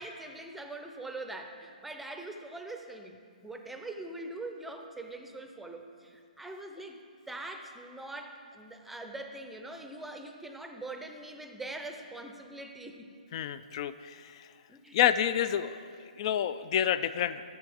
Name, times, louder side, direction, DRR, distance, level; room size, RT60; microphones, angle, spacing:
voice 1, 0.0-3.2 3.4-7.0 7.3-13.1 14.7-15.0, right 2 dB, 5° right, 4 dB, 0.6 m, -43 dB
voice 2, 13.3-14.5 14.9-17.4, left 10 dB, 40° left, 14 dB, 0.3 m, -29 dB
13.5 x 7.4 x 3.5 m, 2.2 s
hypercardioid pair, 145°, 5 cm